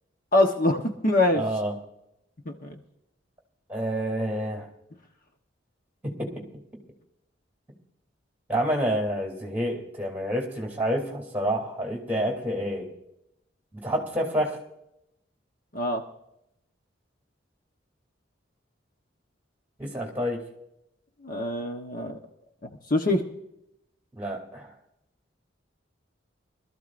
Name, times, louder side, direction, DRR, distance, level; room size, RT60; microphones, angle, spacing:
voice 1, 0.3-1.4 2.5-2.7 15.7-16.0 21.2-22.2 22.9-23.2, left 1 dB, 50° left, 3 dB, 1.1 m, -24 dB
voice 2, 1.3-1.7 3.7-4.7 6.0-6.4 8.5-12.9 13.7-14.6 19.8-20.4 24.2-24.7, equal, 10° right, 0 dB, 3.1 m, -28 dB
24.0 x 13.5 x 2.6 m, 0.82 s
head